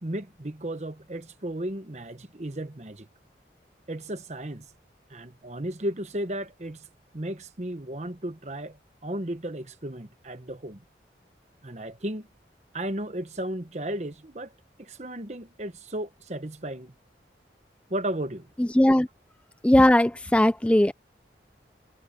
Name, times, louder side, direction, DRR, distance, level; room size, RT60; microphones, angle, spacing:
voice 1, 0.0-3.1 3.9-4.7 5.1-6.9 7.1-10.8 11.6-12.3 12.7-14.5 14.8-16.9 17.9-18.5, right 1 dB, 40° right, 1.1 m, -34 dB
voice 2, 18.6-19.1 19.6-20.9, left 1 dB, 5° left, 0.3 m, -19 dB
head